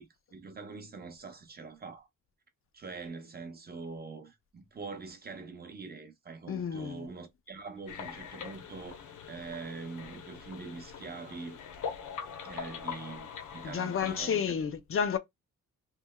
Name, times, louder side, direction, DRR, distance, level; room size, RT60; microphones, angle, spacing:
voice 1, 0.0-2.1 2.7-11.6 12.4-14.5, right 4 dB, 30° right, 0.6 m, -44 dB
voice 2, 6.5-7.1 13.6-15.2, left 7 dB, 45° left, 0.5 m, -31 dB
sound 1, 7.9-14.2, left 7 dB, 70° left, 0.8 m, -43 dB
2.9 x 2.7 x 2.2 m
wide cardioid pair, 145°, 32 cm